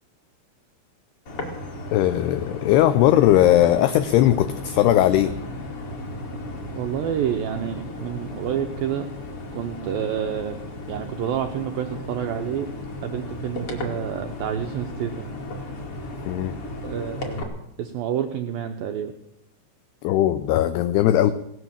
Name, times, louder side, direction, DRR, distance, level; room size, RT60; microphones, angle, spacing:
sound 1, 1.3-17.4, left 2 dB, 40° left, 2.5 m, -35 dB
voice 1, 1.9-5.3 16.3-16.6 20.0-21.3, left 12 dB, 80° left, 11 dB, 2.4 m, -19 dB
voice 2, 6.8-9.1 9.5-10.6 10.9-12.7 13.0-15.3 16.8-17.5 17.8-19.1, right 9 dB, 90° right, 5 dB, 2.1 m, -28 dB
17.5 x 11.0 x 7.3 m, 0.81 s
omnidirectional pair, 5.4 m